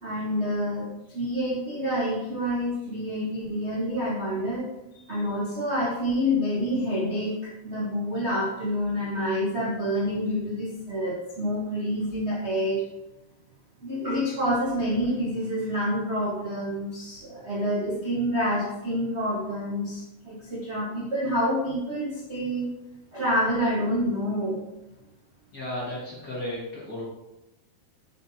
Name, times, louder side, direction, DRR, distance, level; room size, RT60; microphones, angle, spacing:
voice 1, 0.0-0.9 1.1-4.7 4.9-12.8 13.8-22.7 23.1-24.6, equal, 40° right, -7 dB, 0.9 m, -27 dB
voice 2, 25.5-27.0, left 1 dB, 40° left, -6 dB, 1.7 m, -34 dB
7.9 x 6.2 x 2.8 m, 0.94 s
omnidirectional pair, 3.8 m